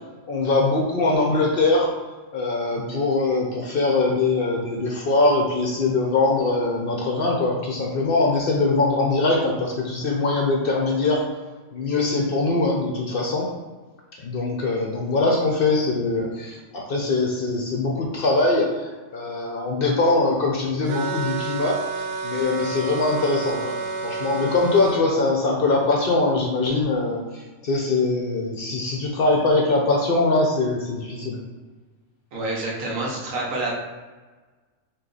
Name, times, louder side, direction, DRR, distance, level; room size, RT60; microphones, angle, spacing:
voice 1, 0.3-1.9 2.3-11.2 11.7-13.5 14.2-21.8 22.2-23.8 24.0-31.4, left 3 dB, 55° left, -1 dB, 0.7 m, -22 dB
sound 1, 20.9-25.0, right 3 dB, 60° right, 0.7 m, -30 dB
voice 2, 32.3-33.7, right 2 dB, 90° right, -3 dB, 1.2 m, -27 dB
3.0 x 2.9 x 3.8 m, 1.3 s
omnidirectional pair, 1.3 m